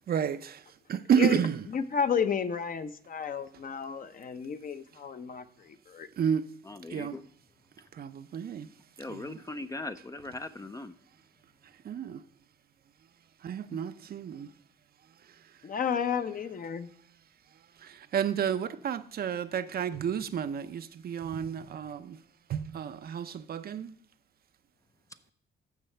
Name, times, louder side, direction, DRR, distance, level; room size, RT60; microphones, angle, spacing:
voice 1, 0.1-1.7 6.2-6.5 6.9-7.2 7.8-9.4 11.6-12.3 13.4-14.5 15.0-15.7 17.5-22.2 22.5-24.0, right 8 dB, 50° right, 0.6 m, -31 dB
voice 2, 1.7-6.1 15.6-16.9, left 7 dB, 45° left, 0.7 m, -32 dB
voice 3, 6.7-7.2 9.0-10.9 13.7-13.8, left 2 dB, 15° left, 0.4 m, -39 dB
14.5 x 5.6 x 3.3 m
cardioid pair, 90°, 20 cm